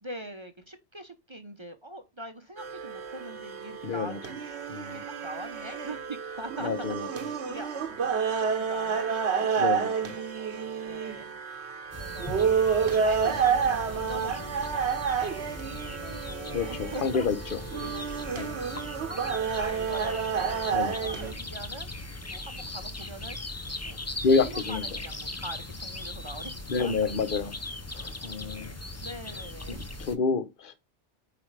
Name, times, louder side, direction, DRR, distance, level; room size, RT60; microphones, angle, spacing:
voice 1, 0.0-4.4 4.9-11.3 12.0-12.5 12.9-20.7 21.0-21.9 22.3-23.4 23.8-24.0 24.4-27.2 29.0-29.8, right 1 dB, 30° right, 0.8 m, -43 dB
sound 1, 2.6-21.3, right 6 dB, 75° right, 1.3 m, -30 dB
voice 2, 3.8-4.2 4.7-5.0 6.6-7.1 9.6-10.1 16.5-17.6 18.4-18.5 20.7-20.9 24.2-24.9 26.7-27.6 27.9-28.8 29.7-30.8, left 4 dB, 50° left, 1.0 m, -28 dB
sound 2, 11.9-30.2, left 2 dB, 20° left, 0.5 m, -39 dB
8.2 x 5.0 x 3.3 m
omnidirectional pair, 1.2 m